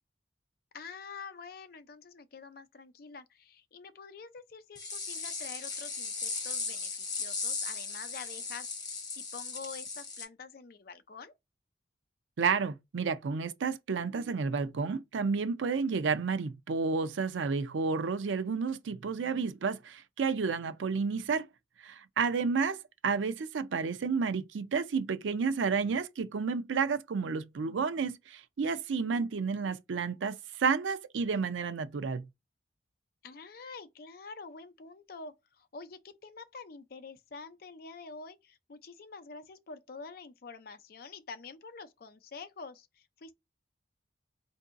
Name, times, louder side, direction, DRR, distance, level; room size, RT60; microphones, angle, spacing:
voice 1, 0.7-11.3 33.2-43.3, left 4 dB, 55° left, 0.5 m, -47 dB
sound 1, 4.8-10.3, left 4 dB, 20° left, 0.9 m, -37 dB
voice 2, 12.4-21.5 21.8-32.3, right 5 dB, 85° right, 0.5 m, -31 dB
4.5 x 2.6 x 2.5 m
head